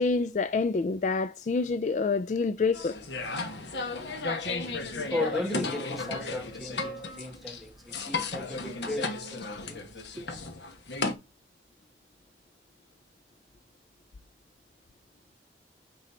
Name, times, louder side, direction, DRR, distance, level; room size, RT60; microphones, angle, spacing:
voice 1, 0.0-3.0, left 4 dB, 40° left, 0.3 m, -27 dB
sound 1, 2.7-11.1, left 3 dB, 80° left, 1.1 m, -34 dB
voice 2, 5.1-9.9 10.2-10.3, left 1 dB, ahead, 1.0 m, -36 dB
9.1 x 4.0 x 4.2 m
head